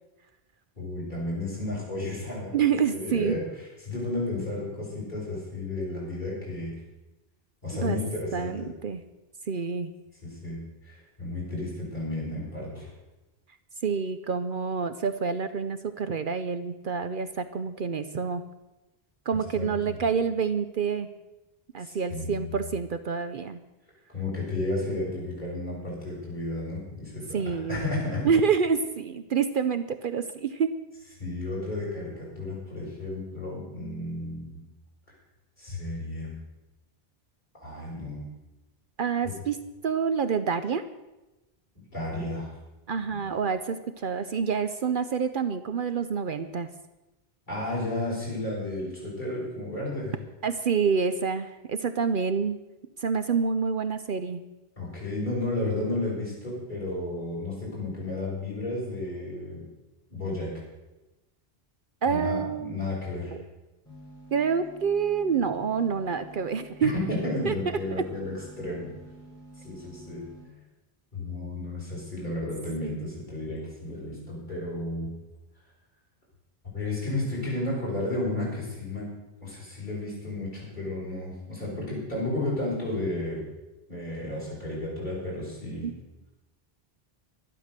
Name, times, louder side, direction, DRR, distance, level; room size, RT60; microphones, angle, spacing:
voice 1, 0.8-2.6 2.9-3.4 3.8-6.7 7.6-8.7 10.2-12.9 19.5-19.9 21.8-22.5 24.1-28.3 31.2-34.6 35.6-36.3 37.6-38.3 41.9-42.5 43.1-43.2 47.5-50.2 54.8-59.6 60.1-60.5 62.0-63.4 66.8-68.9 69.6-70.3 71.1-75.1 76.7-79.1 79.4-83.4 83.9-85.9, left 2 dB, 50° left, -6 dB, 6.5 m, -32 dB
voice 2, 2.5-3.4 7.7-8.0 8.3-9.0 9.5-9.9 13.8-18.4 19.3-21.1 21.7-23.6 27.3-27.8 28.2-30.7 39.0-39.6 39.8-40.8 42.9-46.7 50.4-52.6 53.0-54.4 62.0-62.8 63.3-63.4 64.3-66.9 67.4-67.5 67.9-68.0 72.8-73.0 85.8-85.9, right 6 dB, 60° right, 11 dB, 0.8 m, -27 dB
sound 1, 63.9-70.4, right 1 dB, 5° left, 5.8 m, -49 dB
12.0 x 11.5 x 6.6 m, 1.0 s
omnidirectional pair, 1.1 m